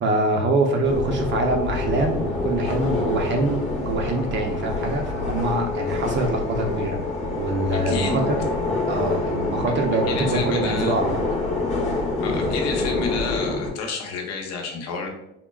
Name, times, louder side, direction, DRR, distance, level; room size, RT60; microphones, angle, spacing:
voice 1, 0.0-7.0 7.3-8.5 8.9-11.2, right 2 dB, 40° right, 3 dB, 0.6 m, -24 dB
sound 1, 0.8-13.7, left 3 dB, 25° left, 0.9 m, -26 dB
sound 2, 1.8-8.3, equal, ahead, 0.4 m, -40 dB
voice 2, 7.7-8.2 8.7-8.8 10.1-10.9 12.2-15.1, left 4 dB, 60° left, 2 dB, 0.8 m, -30 dB
3.7 x 2.1 x 2.3 m, 0.86 s
supercardioid pair, 110°, 30 cm